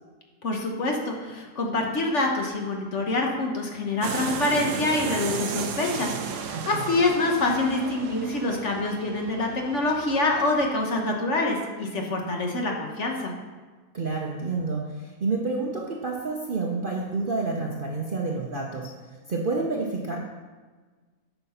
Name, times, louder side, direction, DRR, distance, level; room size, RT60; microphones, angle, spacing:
voice 1, 0.4-13.3, left 2 dB, 50° left, 1 dB, 1.3 m, -26 dB
sound 1, 4.0-10.7, right 6 dB, 80° right, 1.3 m, -34 dB
voice 2, 6.5-6.8 13.9-18.9 19.3-20.2, right 3 dB, 45° right, 0 dB, 0.7 m, -29 dB
8.5 x 5.9 x 5.7 m, 1.4 s
omnidirectional pair, 1.8 m